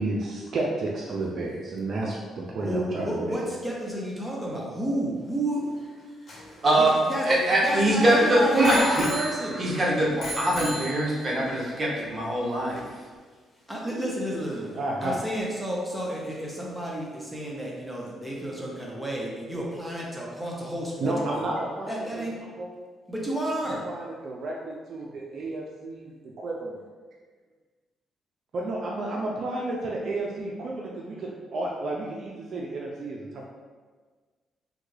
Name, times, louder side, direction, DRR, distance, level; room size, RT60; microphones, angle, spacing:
voice 1, 0.0-3.4 14.7-15.1 21.0-22.3 22.6-22.7 23.8-26.8 28.5-33.5, right 2 dB, 60° right, -2 dB, 0.4 m, -31 dB
sound 1, 1.6-2.1 2.7-2.8 3.0-3.7 4.2-4.4 5.3-7.6 8.0-10.2 10.5-13.3 13.6-13.7 14.3-15.0 15.4-15.7 16.1-16.7 17.3-17.4 17.6-18.1, equal, 40° left, 1.1 m, -39 dB
voice 2, 2.6-5.9 6.7-9.6 13.7-21.5 21.9-22.4 23.1-23.8, right 1 dB, 5° right, -4 dB, 0.6 m, -31 dB
Bicycle bell, 6.3-8.0 8.6-9.8 10.2-11.5 12.2-12.3, right 1 dB, 60° left, 0.7 m, -37 dB
voice 3, 7.2-9.1 9.6-12.8, right 1 dB, 35° right, -4 dB, 1.0 m, -23 dB
3.6 x 2.2 x 3.1 m, 1.4 s
cardioid pair, 90°, 0 cm